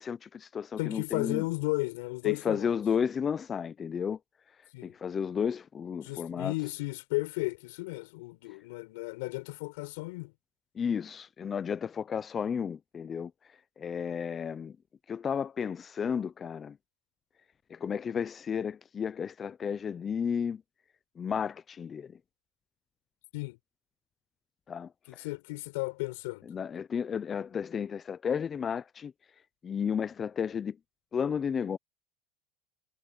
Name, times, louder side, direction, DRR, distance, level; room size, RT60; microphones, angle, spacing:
voice 1, 0.0-1.4 2.2-4.2 4.8-6.5 10.8-13.3 13.8-14.7 15.1-16.8 17.7-20.6 21.2-22.2 24.7-25.2 26.5-29.1 29.6-30.8 31.1-31.8, left 7 dB, 25° left, 0.5 m, -33 dB
voice 2, 0.8-2.7 4.7-5.0 6.0-10.3 23.3-23.6 25.1-26.5, left 24 dB, 85° left, 6.5 m, -34 dB
cardioid pair, 140°, 0 cm